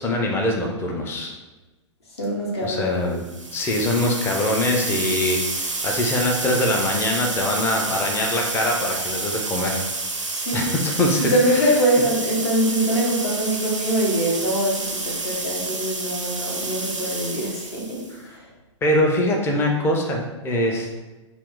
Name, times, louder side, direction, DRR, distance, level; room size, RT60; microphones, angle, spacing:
voice 1, 0.0-1.3 2.6-3.2 3.5-9.8 10.5-11.7 18.8-20.9, left 1 dB, 15° left, 1 dB, 0.5 m, -23 dB
voice 2, 2.2-3.1 10.3-10.7 11.2-18.5, equal, 60° left, -3 dB, 1.2 m, -23 dB
sound 1, 3.2-18.1, right 3 dB, 90° right, 0.5 m, -29 dB
3.6 x 2.4 x 3.7 m, 1.2 s
figure-of-eight pair, 105°, 16 cm